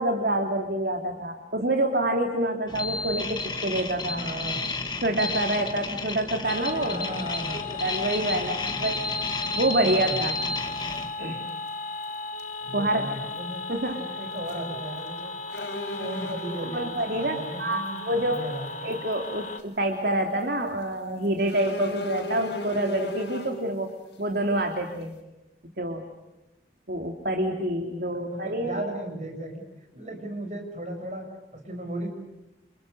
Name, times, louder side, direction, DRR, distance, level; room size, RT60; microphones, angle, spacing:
voice 1, 0.0-4.2 5.0-7.0 7.5-9.0 9.3-10.4 11.2-11.5 12.7-13.1 13.7-14.0 16.7-18.5 18.8-23.9 24.2-25.1 25.8-26.1 26.9-28.8, right 1 dB, 60° right, 4 dB, 2.8 m, -27 dB
sound 1, 2.7-11.1, left 2 dB, 25° left, 2.1 m, -32 dB
voice 2, 4.1-4.6 6.8-7.7 8.6-8.9 9.8-10.2 12.6-13.6 13.9-15.4 15.9-18.9 28.2-29.6 29.9-31.3 31.5-32.1, right 1 dB, 40° right, 4 dB, 7.2 m, -36 dB
sound 2, 6.4-19.6, left 3 dB, 45° left, 2.4 m, -36 dB
sound 3, 9.8-9.9 11.5-11.7 12.0-12.1 12.4-12.5 14.4-14.7 15.0-15.1 15.5-16.7 17.7-17.9 18.3-18.4 18.9-19.1 19.6-19.7 21.5-23.6, left 2 dB, 75° left, 6.6 m, -35 dB
29.0 x 28.0 x 6.6 m, 0.95 s
head